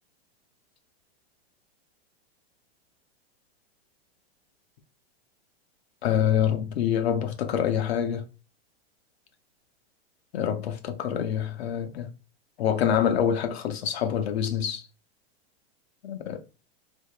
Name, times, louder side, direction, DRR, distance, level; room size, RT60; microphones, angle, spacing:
voice 1, 6.0-8.2 10.3-12.1 12.6-14.9 16.0-16.4, left 9 dB, 80° left, 0.6 m, -26 dB
3.4 x 2.1 x 2.3 m
hypercardioid pair, 140°, 31 cm